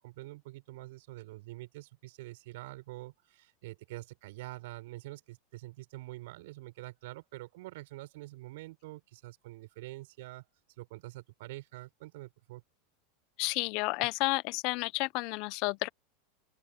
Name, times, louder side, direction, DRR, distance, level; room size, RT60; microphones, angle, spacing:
voice 1, 0.0-10.5 10.8-12.6, right 19 dB, 70° right, 6.7 m, -46 dB
voice 2, 13.4-15.9, left 25 dB, 55° left, 0.8 m, -31 dB
open air
supercardioid pair, 115°, 0 cm